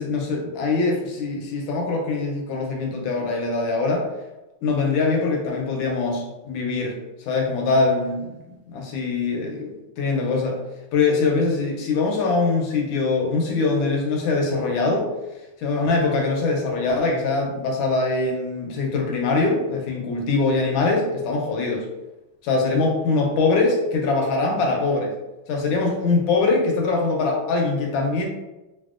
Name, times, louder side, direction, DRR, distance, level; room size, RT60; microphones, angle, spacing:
voice 1, 0.0-4.1 4.6-7.0 7.3-10.6 10.9-15.1 15.6-21.9 22.4-25.1 25.5-28.3, left 3 dB, 75° left, 0 dB, 1.3 m, -23 dB
3.4 x 2.3 x 2.3 m, 1.0 s
omnidirectional pair, 2.3 m